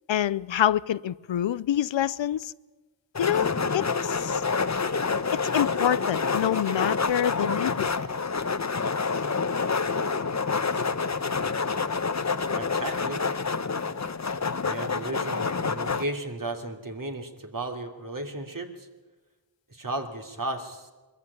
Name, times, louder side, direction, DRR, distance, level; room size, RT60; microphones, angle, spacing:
voice 1, 0.1-2.5 3.2-4.4 5.3-7.9, left 11 dB, 80° left, 0.6 m, -26 dB
sound 1, 3.2-16.0, left 4 dB, 40° left, 1.0 m, -27 dB
voice 2, 12.5-13.2 14.7-18.9 19.7-20.9, right 1 dB, 45° right, 2.9 m, -34 dB
22.0 x 14.5 x 9.9 m
cardioid pair, 50°, 44 cm